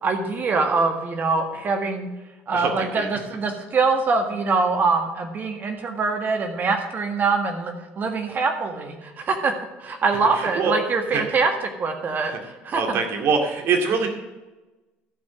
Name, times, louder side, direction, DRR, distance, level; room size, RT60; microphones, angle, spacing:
voice 1, 0.0-2.1 2.5-9.5 9.8-11.5 11.8-13.0, right 4 dB, 45° right, 4 dB, 1.7 m, -24 dB
voice 2, 2.5-3.2 10.1-10.8 11.1-11.4 12.2-12.4 12.7-14.1, right 5 dB, 65° right, 4 dB, 2.2 m, -24 dB
12.5 x 5.2 x 7.5 m, 1.1 s
supercardioid pair, 90°, 5 cm